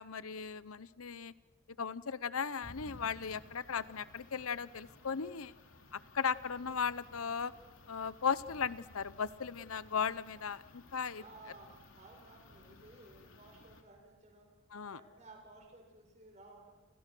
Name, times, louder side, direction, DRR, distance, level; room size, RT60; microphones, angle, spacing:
voice 1, 0.0-1.3 1.8-5.5 5.9-7.5 7.9-11.2 14.7-15.0, left 6 dB, 85° left, 16 dB, 0.8 m, -37 dB
sound 1, 2.6-13.8, left 2 dB, 70° left, 3.1 m, -57 dB
voice 2, 11.2-14.5 14.8-16.7, right 2 dB, 30° right, 1 dB, 7.3 m, -56 dB
29.5 x 29.5 x 6.2 m, 1.1 s
head